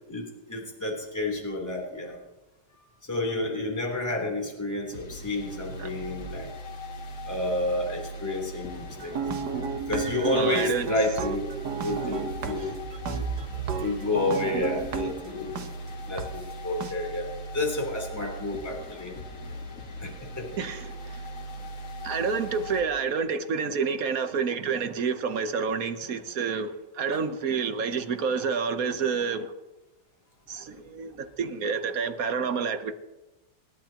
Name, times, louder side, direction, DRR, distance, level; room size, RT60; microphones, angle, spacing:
voice 1, 0.1-2.2 3.1-6.5 7.3-9.2 9.9-11.5 11.8-12.8 13.0-15.7 16.0-19.1 20.0-20.6 27.1-27.2, left 2 dB, 10° left, 3.4 m, -30 dB
sound 1, 4.9-22.8, right 1 dB, 50° left, 1.6 m, -40 dB
sound 2, 9.0-15.7 16.2-16.3 16.8-16.9, right 5 dB, 75° right, 1.7 m, -33 dB
voice 2, 10.3-10.9 12.6-12.7 20.6-21.2 22.0-29.5 30.5-32.9, right 5 dB, 55° right, 1.3 m, -29 dB
28.0 x 11.0 x 3.0 m
omnidirectional pair, 1.9 m